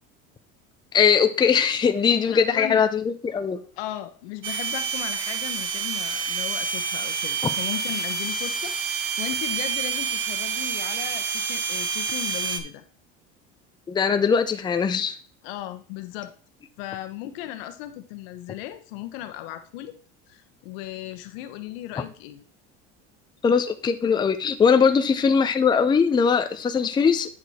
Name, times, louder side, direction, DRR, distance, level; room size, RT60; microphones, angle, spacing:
voice 1, 0.9-3.6 13.9-15.2 23.4-27.3, left 6 dB, 15° left, 8 dB, 0.5 m, -20 dB
voice 2, 2.3-2.8 3.8-12.8 15.4-16.3 16.8-19.9 20.3-22.4, left 13 dB, 80° left, 9 dB, 1.1 m, -36 dB
sound 1, 4.4-12.6, right 6 dB, 40° right, 1.1 m, -28 dB
8.6 x 4.7 x 4.2 m, 0.42 s
supercardioid pair, 130°, 30 cm